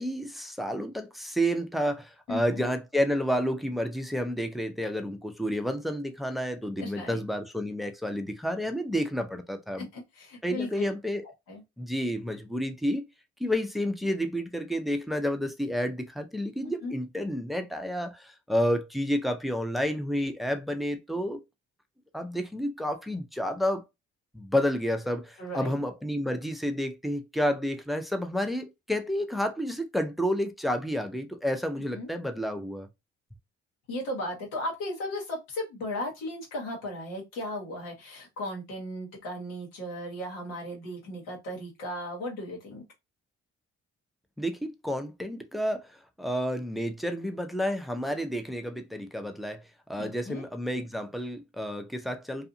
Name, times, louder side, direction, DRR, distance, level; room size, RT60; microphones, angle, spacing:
voice 1, 0.0-9.9 10.4-11.2 11.8-13.0 13.4-21.4 22.1-23.8 24.3-32.9 44.4-45.9 46.2-49.6 49.9-52.5, equal, ahead, 0.6 m, -30 dB
voice 2, 2.3-2.7 6.8-7.2 9.9-10.8 11.5-11.6 16.8-17.0 25.4-25.7 31.9-32.1 33.9-42.8 50.0-50.4, left 1 dB, 85° left, 1.2 m, -36 dB
2.5 x 2.4 x 2.6 m
hypercardioid pair, 50°, 31 cm